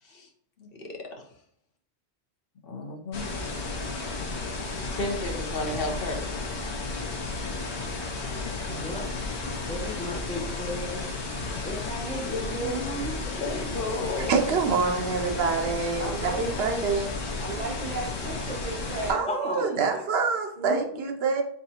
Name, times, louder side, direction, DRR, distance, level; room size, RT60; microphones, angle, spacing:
voice 1, 0.6-1.2 2.7-3.2 4.8-6.3 8.6-8.9 13.4-14.3, left 2 dB, 60° left, 1 dB, 1.1 m, -33 dB
sound 1, 3.1-19.1, left 3 dB, 85° left, 1.1 m, -33 dB
voice 2, 8.7-9.0 9.7-11.0 11.6-13.7 19.3-20.0, left 1 dB, 5° left, 0 dB, 0.7 m, -34 dB
voice 3, 12.2-12.9 16.0-16.7 17.4-19.3 19.6-19.7 20.6-21.0, right 3 dB, 50° right, -7 dB, 1.3 m, -35 dB
voice 4, 14.2-17.1 19.1-21.4, right 4 dB, 70° right, 4 dB, 0.9 m, -26 dB
4.0 x 3.6 x 2.8 m, 0.66 s
omnidirectional pair, 1.1 m